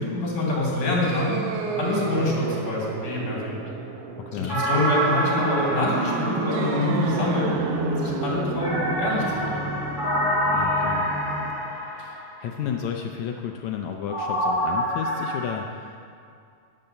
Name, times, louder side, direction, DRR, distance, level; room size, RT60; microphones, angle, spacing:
voice 1, 0.0-1.4 1.8-3.6 4.3-7.5 7.8-9.6, left 2 dB, 50° left, -4 dB, 4.2 m, -26 dB
sound 1, 1.0-11.5, right 4 dB, 75° right, 1.4 m, -30 dB
voice 2, 4.2-4.6 10.5-11.0 12.0-16.0, left 8 dB, 85° left, 3 dB, 1.6 m, -32 dB
sound 2, 4.5-7.3 8.6-12.4 14.1-15.4, equal, 25° right, 2.8 m, -27 dB
11.0 x 9.0 x 6.7 m, 2.4 s
omnidirectional pair, 4.0 m